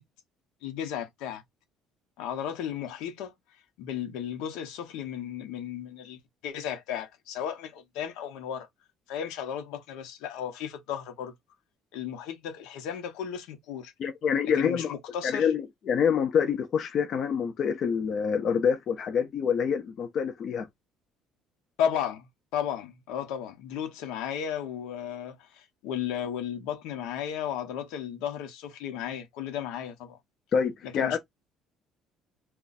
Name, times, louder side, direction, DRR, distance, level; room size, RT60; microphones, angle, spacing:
voice 1, 0.6-1.4 2.2-3.3 3.8-8.7 9.1-11.3 11.9-13.9 14.5-15.5 21.8-22.2 22.5-30.2 30.8-31.2, left 9 dB, 85° left, 0.9 m, -34 dB
voice 2, 14.0-14.9 15.2-20.7 30.5-31.2, left 7 dB, 45° left, 0.4 m, -26 dB
2.5 x 2.3 x 3.9 m
cardioid pair, 150°, 0 cm